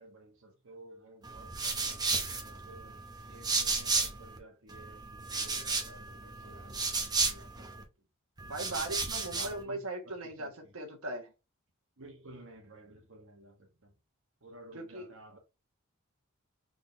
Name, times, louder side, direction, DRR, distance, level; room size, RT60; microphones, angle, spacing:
voice 1, 0.0-3.0 3.3-7.9 9.2-10.7 12.0-13.9 14.4-15.4, right 1 dB, 65° right, 1.3 m, -54 dB
sound 1, 1.2-4.4 4.7-7.8 8.4-9.6, right 3 dB, 20° right, 0.9 m, -34 dB
voice 2, 8.5-11.3 14.7-15.1, right 2 dB, 90° right, 1.3 m, -39 dB
4.0 x 3.8 x 3.5 m
head